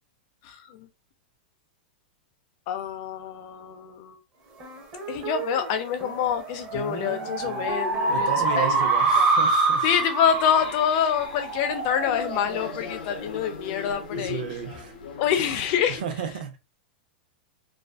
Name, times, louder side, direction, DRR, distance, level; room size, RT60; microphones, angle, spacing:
voice 1, 0.4-0.9 2.7-4.2 5.1-8.7 9.2-9.3 9.8-14.4 15.2-16.0, left 8 dB, 35° left, 0.4 m, -26 dB
sound 1, 4.6-13.4, right 3 dB, 20° right, 0.5 m, -26 dB
voice 2, 8.1-9.9 14.1-14.9 15.9-16.6, right 7 dB, 60° right, 0.6 m, -33 dB
sound 2, 10.2-16.0, left 6 dB, 75° left, 0.6 m, -39 dB
2.4 x 2.3 x 2.2 m
supercardioid pair, 175°, 5 cm